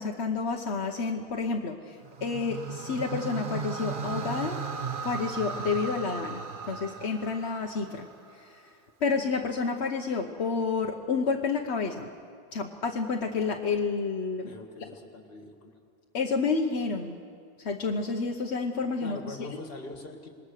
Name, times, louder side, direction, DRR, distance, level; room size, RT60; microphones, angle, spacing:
voice 1, 0.0-4.6 5.0-8.1 8.3-8.7 9.0-12.1 12.5-14.5 14.8-14.9 16.1-17.2 17.6-19.5, left 4 dB, 85° left, 2 dB, 1.3 m, -30 dB
sound 1, 2.0-8.3, right 5 dB, 55° right, 1.1 m, -36 dB
voice 2, 14.4-15.8 19.0-20.3, left 2 dB, 60° left, 4 dB, 2.2 m, -43 dB
26.5 x 20.5 x 6.6 m, 2.2 s
omnidirectional pair, 1.1 m